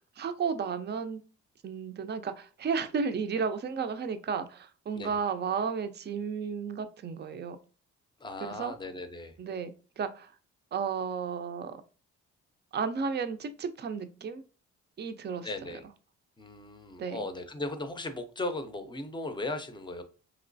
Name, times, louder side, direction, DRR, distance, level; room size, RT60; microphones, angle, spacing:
voice 1, 0.2-1.2 1.6-7.6 8.4-8.7 9.4-10.3 10.7-11.8 12.7-14.4 15.0-15.5 17.0-17.3, right 6 dB, 35° right, 10 dB, 0.4 m, -33 dB
voice 2, 8.2-9.3 15.4-15.8 16.4-20.0, left 2 dB, 15° left, 8 dB, 0.5 m, -37 dB
3.0 x 2.9 x 2.6 m, 0.36 s
cardioid pair, 90°, 30 cm